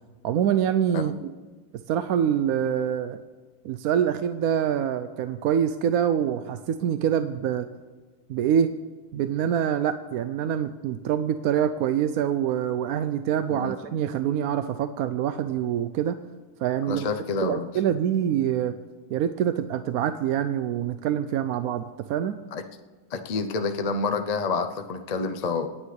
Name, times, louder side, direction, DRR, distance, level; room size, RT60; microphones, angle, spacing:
voice 1, 0.2-1.1 1.9-3.2 3.6-7.7 8.3-8.7 9.1-16.2 16.6-18.7 19.1-22.4, right 9 dB, 75° right, 10 dB, 1.0 m, -25 dB
voice 2, 16.9-17.7 22.5-22.6 23.1-25.7, left 4 dB, 45° left, 6 dB, 0.5 m, -28 dB
27.0 x 9.5 x 3.3 m, 1.4 s
omnidirectional pair, 1.7 m